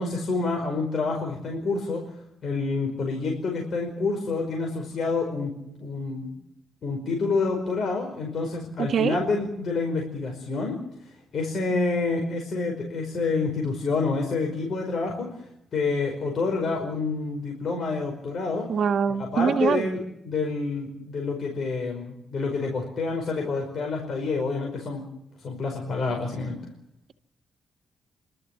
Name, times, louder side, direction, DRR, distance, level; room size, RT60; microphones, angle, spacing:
voice 1, 0.0-2.1 2.4-5.5 5.8-6.3 6.8-10.8 11.3-15.3 15.7-18.7 19.3-25.0 25.4-26.5, left 3 dB, 60° left, 1 dB, 5.2 m, -28 dB
voice 2, 8.8-9.2 18.7-19.9, right 7 dB, 70° right, 7 dB, 1.6 m, -23 dB
29.5 x 13.5 x 8.5 m, 0.78 s
cardioid pair, 85°, 0 cm